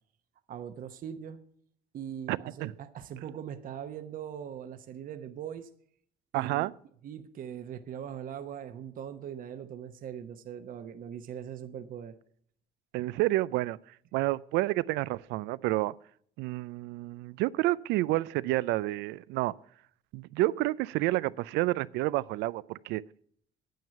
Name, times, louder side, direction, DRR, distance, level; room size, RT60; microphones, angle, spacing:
voice 1, 0.5-1.4 1.9-5.7 6.3-6.7 7.0-12.1, right 9 dB, 55° right, 0.9 m, -41 dB
voice 2, 2.3-2.7 6.3-6.7 12.9-13.8 14.1-15.9 16.4-19.6 20.1-23.0, right 18 dB, 90° right, 0.4 m, -29 dB
9.3 x 9.0 x 5.8 m
cardioid pair, 110°, 17 cm